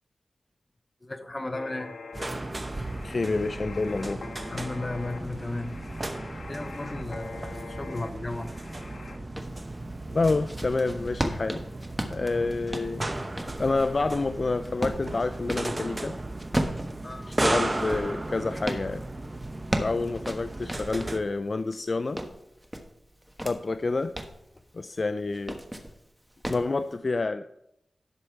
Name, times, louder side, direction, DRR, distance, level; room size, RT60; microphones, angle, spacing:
voice 1, 1.0-2.0 4.5-8.5 17.0-17.3, left 2 dB, 25° left, 9 dB, 0.8 m, -35 dB
sound 1, 1.5-9.2, left 4 dB, 70° left, 1.3 m, -44 dB
sound 2, 2.1-21.2, right 2 dB, 25° right, 0.8 m, -35 dB
voice 2, 3.0-4.2 10.1-11.6 12.1-13.1 13.5-16.2 17.3-19.0 19.8-22.2 23.4-24.2 24.7-25.6 26.5-27.6, left 3 dB, 50° left, 11 dB, 0.3 m, -28 dB
sound 3, 9.4-9.6 10.1-15.7 16.4-18.9 19.4-21.3 21.7-23.6 24.0-24.4 25.3-26.0 26.4-26.7, equal, 10° right, 1.2 m, -34 dB
11.5 x 6.4 x 4.6 m, 0.80 s
wide cardioid pair, 75°, 0 cm